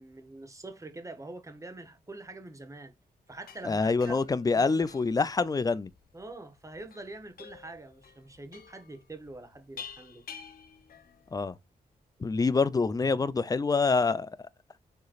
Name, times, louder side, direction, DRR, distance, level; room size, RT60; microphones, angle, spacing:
voice 1, 0.0-2.9 3.3-4.2 4.5-4.9 6.1-10.2, right 2 dB, 20° right, 1.0 m, -45 dB
sound 1, 3.3-11.4, left 7 dB, 70° left, 0.8 m, -50 dB
voice 2, 3.6-5.9 11.3-11.6 12.2-14.5, left 4 dB, 25° left, 0.4 m, -26 dB
6.5 x 3.0 x 2.4 m
cardioid pair, 90°, 16 cm